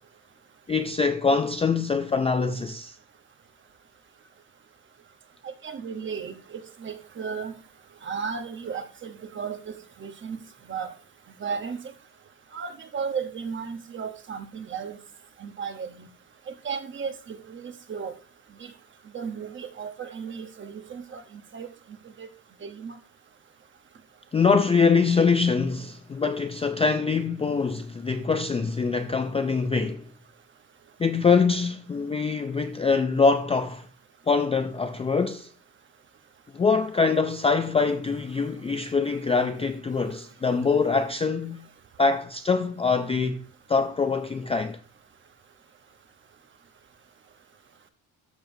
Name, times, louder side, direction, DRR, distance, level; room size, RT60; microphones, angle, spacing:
voice 1, 0.7-3.0 24.3-30.0 31.0-33.9 34.3-35.5 36.5-41.6 42.0-43.4 43.7-44.8, left 4 dB, 20° left, 0.3 m, -24 dB
voice 2, 5.6-7.5 8.0-10.4 10.7-10.9 11.4-11.8 12.5-15.0 15.4-16.1 16.6-18.1 18.6-18.7 19.1-21.7 22.2-22.3 22.6-22.9, right 6 dB, 30° right, 1.0 m, -35 dB
13.5 x 6.8 x 2.7 m
cardioid pair, 175°, 36 cm